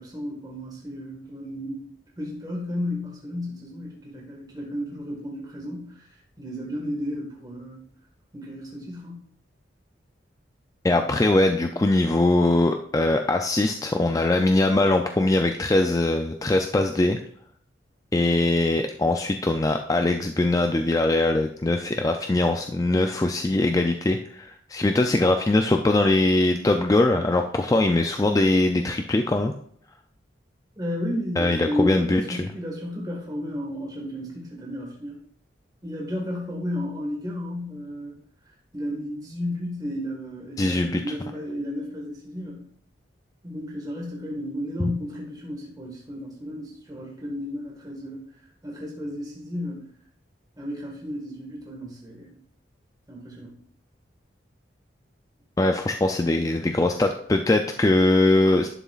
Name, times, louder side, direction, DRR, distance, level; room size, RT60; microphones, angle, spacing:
voice 1, 0.0-1.9 2.2-6.1 6.4-7.8 8.3-9.2 30.8-35.2 35.8-38.1 38.4-42.6 43.4-48.2 48.6-49.8 50.6-52.3 53.1-53.5, left 1 dB, 20° right, -3 dB, 1.6 m, -33 dB
voice 2, 10.8-17.2 18.1-29.5 31.4-32.4 40.6-41.0 55.6-58.7, left 2 dB, 20° left, 5 dB, 0.3 m, -21 dB
11.0 x 7.0 x 2.4 m, 0.62 s
head